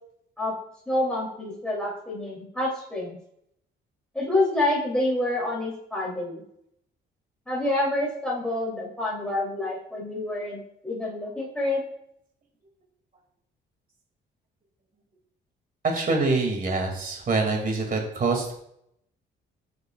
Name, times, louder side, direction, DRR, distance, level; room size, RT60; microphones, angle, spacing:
voice 1, 0.9-3.2 4.1-6.4 7.5-11.8, left 1 dB, 5° left, -4 dB, 2.9 m, -27 dB
voice 2, 15.8-18.5, right 3 dB, 45° right, 2 dB, 2.3 m, -25 dB
13.5 x 7.8 x 2.4 m, 0.73 s
cardioid pair, 90°, 20 cm